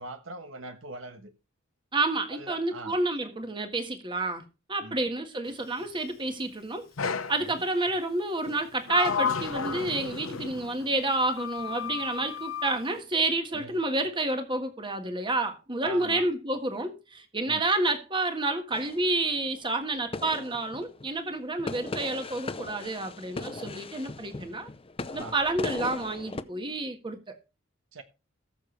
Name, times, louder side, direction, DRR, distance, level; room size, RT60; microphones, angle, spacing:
voice 1, 0.0-1.3 2.3-3.0 4.8-5.0 7.5-7.6 13.5-13.8 15.8-16.3 17.5-17.7 23.5-23.8 25.1-25.3 27.9-28.0, right 2 dB, 70° right, 1.3 m, -42 dB
voice 2, 1.9-6.9 7.3-24.7 25.1-27.4, right 2 dB, 25° right, 1.6 m, -29 dB
Sliding door, 7.0-7.4 8.4-10.9 11.4-12.8, left 5 dB, 85° left, 1.0 m, -32 dB
sound 1, 18.7-19.5 20.1-21.2 21.6-26.4, left 3 dB, 25° left, 0.6 m, -38 dB
19.0 x 6.8 x 3.3 m
head